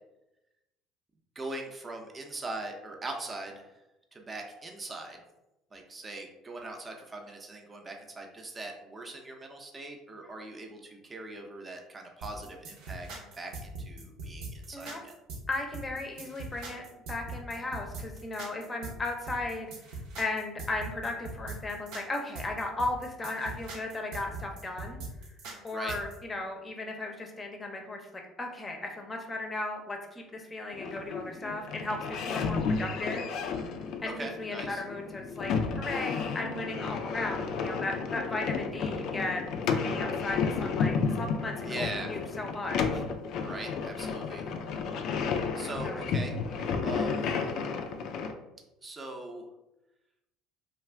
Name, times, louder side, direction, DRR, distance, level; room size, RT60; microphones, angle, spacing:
voice 1, 1.4-3.6 4.1-5.2 5.7-15.1 25.7-25.9 34.2-34.8 41.6-42.1 43.4-44.4 45.6-46.3 46.8-47.2 48.8-49.4, right 2 dB, 25° right, 2 dB, 0.6 m, -41 dB
sound 1, 12.2-26.2, right 3 dB, 75° right, 0.7 m, -41 dB
voice 2, 15.5-16.8 17.1-25.0 25.6-28.0 28.4-33.3 34.0-43.1 45.8-46.0, left 2 dB, 25° left, 2 dB, 0.6 m, -36 dB
sound 2, 30.7-48.3, left 5 dB, 65° left, 0.3 m, -32 dB
2.5 x 2.3 x 3.3 m, 0.96 s
supercardioid pair, 90°, 0 cm